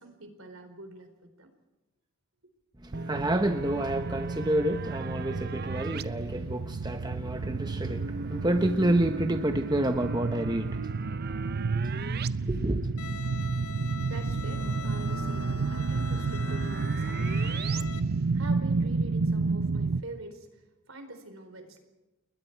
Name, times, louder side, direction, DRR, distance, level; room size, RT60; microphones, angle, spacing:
voice 1, 0.0-1.5 12.9-13.0 14.0-18.0 18.3-21.8, right 2 dB, 70° right, 4.2 m, -45 dB
voice 2, 2.8-11.0 11.8-12.9, right 1 dB, 20° right, 1.0 m, -29 dB
sound 1, 2.9-6.0 7.4-12.3 12.6-12.7 14.3-17.8, right 3 dB, 45° right, 0.7 m, -38 dB
sound 2, 3.1-20.0, right 4 dB, 85° right, 0.7 m, -31 dB
Bowed string instrument, 13.0-18.0, left 5 dB, 90° left, 1.6 m, -43 dB
29.0 x 21.5 x 4.6 m
head